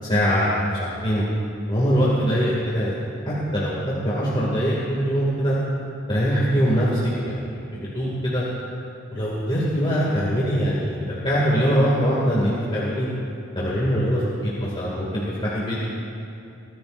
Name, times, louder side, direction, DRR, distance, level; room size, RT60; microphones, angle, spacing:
voice 1, 0.0-1.2 1.7-3.7 4.0-5.6 6.1-8.4 9.1-13.1 13.5-15.8, equal, 25° left, -7 dB, 2.4 m, -23 dB
24.0 x 16.0 x 2.6 m, 2.6 s
head